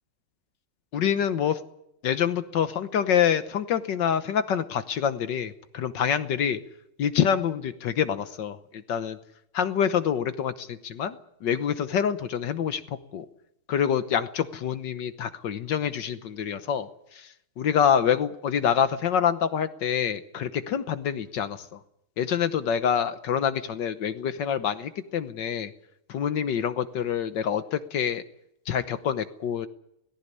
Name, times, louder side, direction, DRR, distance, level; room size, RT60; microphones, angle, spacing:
voice 1, 0.9-1.6 2.0-6.6 7.0-9.2 9.5-12.8 13.1-13.2 13.7-16.9 17.6-21.6 22.2-25.7 26.1-28.2 28.7-29.7, left 8 dB, 65° left, 11 dB, 1.6 m, -26 dB
18.5 x 16.5 x 9.8 m, 0.79 s
omnidirectional pair, 2.2 m